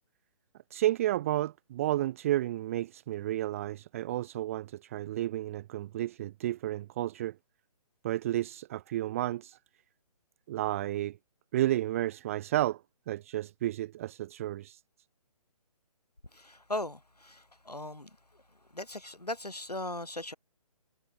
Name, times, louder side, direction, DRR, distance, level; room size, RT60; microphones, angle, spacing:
voice 1, 0.7-7.4 8.0-9.6 10.5-11.2 11.5-14.8, right 14 dB, 20° right, 0.5 m, -32 dB
voice 2, 16.3-18.1 18.7-20.3, left 1 dB, 90° left, 6.2 m, -38 dB
figure-of-eight pair, 140°, 20 cm